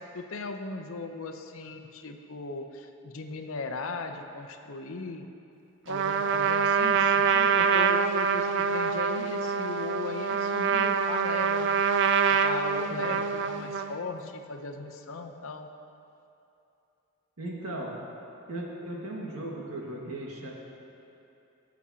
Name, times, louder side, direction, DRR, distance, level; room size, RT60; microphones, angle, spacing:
voice 1, 0.1-5.3 5.9-11.8 12.3-15.7, left 3 dB, 70° left, 6 dB, 0.6 m, -38 dB
Trumpet, 5.9-14.0, right 6 dB, 55° right, 0.3 m, -25 dB
voice 2, 17.4-17.9 18.5-20.5, right 1 dB, 80° right, -3 dB, 1.7 m, -37 dB
17.5 x 7.1 x 2.8 m, 2.8 s
head